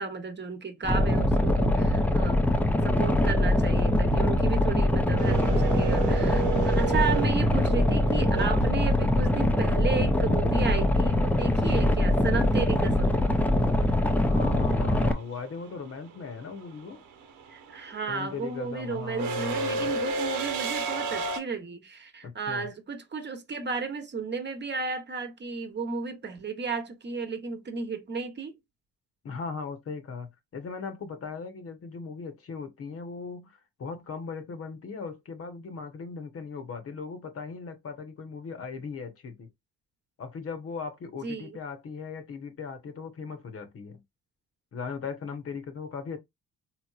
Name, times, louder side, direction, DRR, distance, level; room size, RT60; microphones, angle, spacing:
voice 1, 0.0-2.5 2.8-13.3 17.5-28.5 41.2-41.6, right 5 dB, 35° right, 1.0 m, -33 dB
Boat Water vehicle, 0.8-15.1, left 1 dB, 5° left, 0.5 m, -23 dB
sound 1, 5.2-9.2 11.6-11.7 13.0-13.3 13.6-21.4, right 5 dB, 90° right, 1.1 m, -32 dB
voice 2, 14.1-17.0 18.1-19.9 22.2-22.7 29.2-39.5 40.2-44.0 44.7-46.2, left 5 dB, 50° left, 1.0 m, -38 dB
3.8 x 3.0 x 2.4 m
cardioid pair, 90°, 30 cm